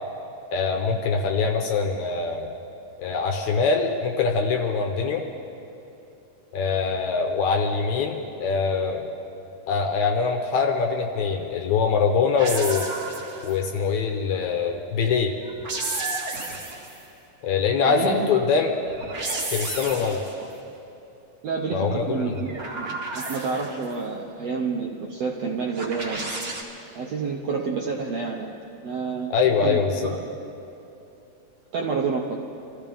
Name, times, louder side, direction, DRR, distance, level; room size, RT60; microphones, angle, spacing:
voice 1, 0.5-2.5 3.0-5.2 6.5-9.1 9.7-12.9 13.4-15.3 17.4-18.7 19.5-20.2 21.7-22.4 29.3-30.1, left 5 dB, 70° left, 3 dB, 1.9 m, -23 dB
sound 1, 12.4-13.7 15.4-17.1 18.8-20.5 22.3-23.9 25.7-26.6, right 2 dB, 45° right, 1.2 m, -32 dB
voice 2, 18.0-18.4 21.4-26.2 26.9-28.5 28.8-29.3 29.6-30.3 31.7-32.4, right 4 dB, 75° right, -1 dB, 1.5 m, -29 dB
26.0 x 14.5 x 3.5 m, 2.8 s
omnidirectional pair, 4.0 m